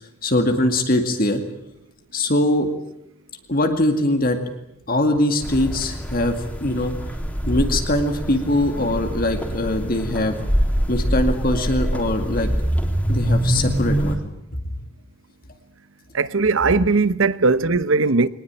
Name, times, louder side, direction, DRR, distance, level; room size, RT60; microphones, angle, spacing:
voice 1, 0.2-1.4 2.1-2.7 3.5-4.4 4.9-6.4 6.6-6.9 7.4-10.4 10.9-12.5 13.1-14.2 14.6-14.7, left 1 dB, 45° left, 2.2 m, -21 dB
sound 1, 5.4-14.2, equal, 5° left, 3.4 m, -24 dB
voice 2, 16.1-18.3, right 3 dB, 70° right, 0.9 m, -19 dB
22.0 x 19.5 x 9.0 m
head